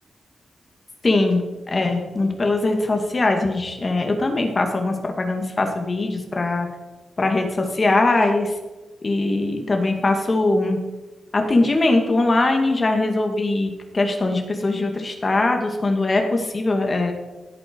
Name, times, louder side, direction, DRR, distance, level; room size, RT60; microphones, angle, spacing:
voice 1, 1.0-6.7 7.2-8.5 9.0-10.8 11.3-17.1, left 2 dB, 30° left, 3 dB, 2.1 m, -21 dB
16.5 x 8.9 x 4.7 m, 1.1 s
wide cardioid pair, 130°, 0 cm